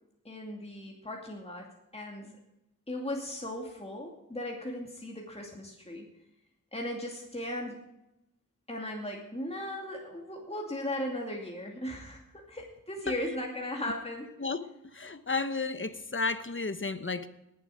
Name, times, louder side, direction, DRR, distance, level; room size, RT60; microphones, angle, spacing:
voice 1, 0.2-1.7 1.9-2.4 2.9-6.1 6.7-7.8 8.7-12.2 12.5-14.3, left 1 dB, 20° left, 0 dB, 2.5 m, -37 dB
voice 2, 14.4-17.3, left 4 dB, 40° left, 12 dB, 1.0 m, -33 dB
18.5 x 8.0 x 4.9 m, 0.88 s
cardioid pair, 45°, 31 cm